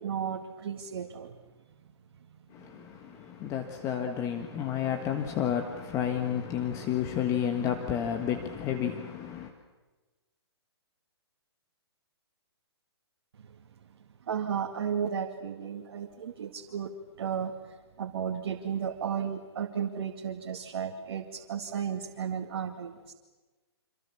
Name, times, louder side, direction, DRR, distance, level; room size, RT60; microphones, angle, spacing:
voice 1, 0.0-1.4 3.4-3.5 13.4-13.5 14.3-16.9 17.2-23.1, right 7 dB, 60° right, 2.1 m, -34 dB
voice 2, 2.5-9.5, left 9 dB, 20° left, 1.6 m, -31 dB
28.0 x 26.0 x 7.2 m
hypercardioid pair, 145°, 14 cm